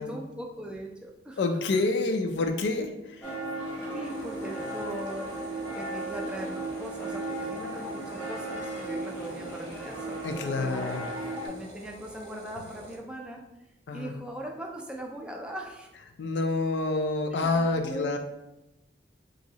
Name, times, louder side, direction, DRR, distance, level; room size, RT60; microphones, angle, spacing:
voice 1, 0.0-1.4 3.9-5.3 5.7-10.9 11.4-13.4 13.9-15.9 17.4-18.2, right 1 dB, 5° right, 0 dB, 0.3 m, -40 dB
voice 2, 1.4-3.3 10.2-11.1 13.9-14.2 16.2-18.2, left 3 dB, 80° left, 6 dB, 0.4 m, -28 dB
sound 1, 3.2-11.5, right 2 dB, 15° left, 0.7 m, -35 dB
sound 2, 4.0-13.0, right 1 dB, 75° right, 0.6 m, -49 dB
3.1 x 2.7 x 2.8 m, 0.93 s
head